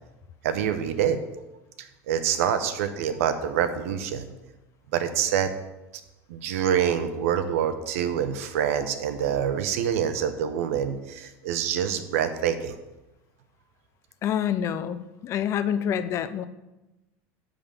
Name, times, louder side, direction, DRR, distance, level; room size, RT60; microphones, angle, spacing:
voice 1, 0.4-1.2 1.8-4.3 4.9-5.5 6.3-12.7, right 8 dB, 90° right, 10 dB, 0.9 m, -26 dB
voice 2, 14.2-16.4, left 9 dB, 40° left, 12 dB, 0.6 m, -27 dB
10.5 x 3.9 x 7.0 m, 1.0 s
supercardioid pair, 135°, 7 cm